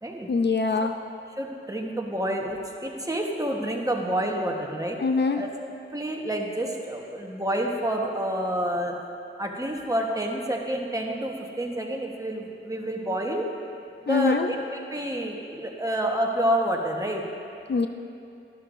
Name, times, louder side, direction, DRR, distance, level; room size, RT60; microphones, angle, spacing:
voice 1, 0.3-1.0 5.0-5.4 14.1-14.5 17.7-17.9, left 4 dB, 55° left, 6 dB, 0.5 m, -23 dB
voice 2, 1.4-5.0 5.3-5.5 5.9-8.9 9.4-13.5 14.0-14.6 14.9-17.2, right 1 dB, 15° right, 0 dB, 1.2 m, -28 dB
13.0 x 12.0 x 2.6 m, 2.5 s
wide cardioid pair, 75°, 21 cm